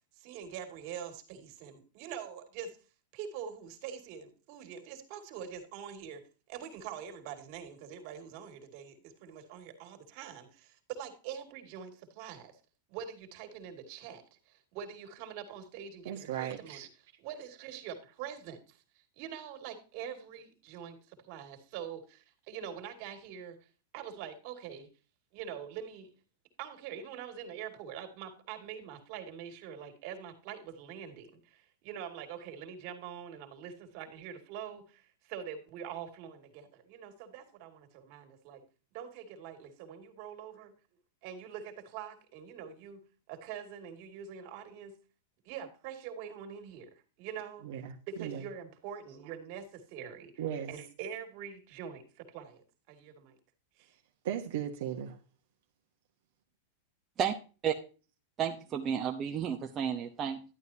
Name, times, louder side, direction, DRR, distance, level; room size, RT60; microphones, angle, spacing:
voice 1, 0.1-2.8 3.1-12.6 12.9-16.9 17.2-23.6 23.9-24.9 25.3-26.1 26.6-38.6 38.9-40.7 41.2-45.0 45.4-47.7 48.1-53.4 53.8-53.9, right 8 dB, 55° right, 6 dB, 2.4 m, -44 dB
voice 2, 16.0-16.9 47.6-48.4 50.4-50.7 54.2-55.2, right 10 dB, 70° right, 2 dB, 1.2 m, -37 dB
voice 3, 58.4-60.4, right 8 dB, 30° right, 3 dB, 0.9 m, -32 dB
11.5 x 9.3 x 2.8 m, 0.35 s
hypercardioid pair, 125°, 0 cm